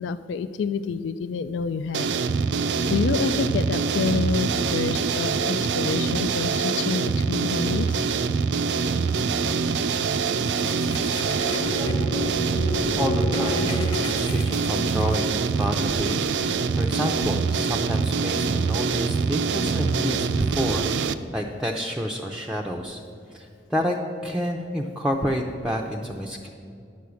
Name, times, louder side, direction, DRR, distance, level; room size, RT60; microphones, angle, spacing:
voice 1, 0.0-2.1 2.9-7.9, left 5 dB, 80° left, 12 dB, 0.3 m, -28 dB
sound 1, 1.9-21.1, right 5 dB, 70° right, 0.4 m, -24 dB
sound 2, 10.4-15.4, left 2 dB, 25° left, 1.0 m, -31 dB
voice 2, 13.0-13.8 14.2-23.0 23.3-24.0 24.2-26.5, equal, 5° right, 0 dB, 0.5 m, -29 dB
10.0 x 6.4 x 6.9 m, 2.4 s
head